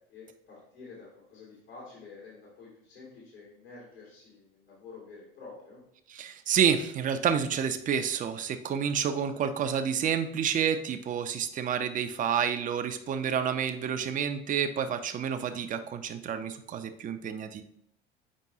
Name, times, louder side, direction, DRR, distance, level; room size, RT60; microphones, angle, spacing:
voice 1, 0.1-5.8, left 4 dB, 75° left, -6 dB, 2.5 m, -49 dB
voice 2, 6.1-17.6, right 8 dB, 25° right, 9 dB, 0.6 m, -29 dB
7.4 x 5.2 x 2.7 m, 0.74 s
figure-of-eight pair, 65°, 30 cm